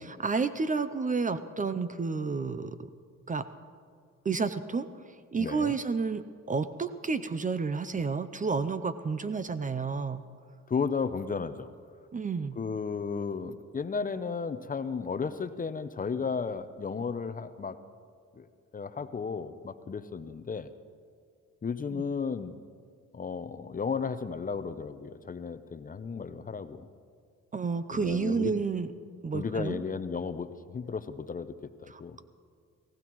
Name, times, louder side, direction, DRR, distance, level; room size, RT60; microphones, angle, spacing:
voice 1, 0.0-2.8 3.3-3.4 4.2-4.9 5.3-6.2 6.5-10.2 12.1-12.6 21.9-22.0 27.5-28.9 29.2-29.8 31.9-32.2, right 4 dB, 25° right, 12 dB, 0.5 m, -30 dB
voice 2, 5.4-5.8 10.7-11.7 12.6-17.8 18.4-18.5 18.7-20.7 21.6-22.6 23.1-26.9 27.9-28.5 29.3-31.5 31.8-32.2, left 5 dB, 30° left, 11 dB, 0.6 m, -34 dB
19.5 x 16.5 x 3.1 m, 2.1 s
cardioid pair, 90°, 30 cm